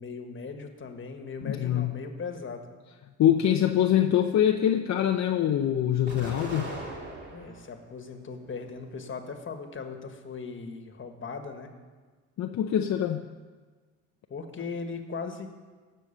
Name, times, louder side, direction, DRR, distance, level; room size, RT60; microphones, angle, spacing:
voice 1, 0.0-2.7 7.3-11.7 14.3-15.5, left 4 dB, 40° left, 6 dB, 1.6 m, -38 dB
voice 2, 1.4-1.9 3.2-6.7 12.4-13.3, left 10 dB, 65° left, 4 dB, 0.7 m, -24 dB
Explosion, 6.1-7.7 8.2-9.1, right 2 dB, 35° right, 3.3 m, -40 dB
17.0 x 6.6 x 6.7 m, 1.4 s
cardioid pair, 90°, 30 cm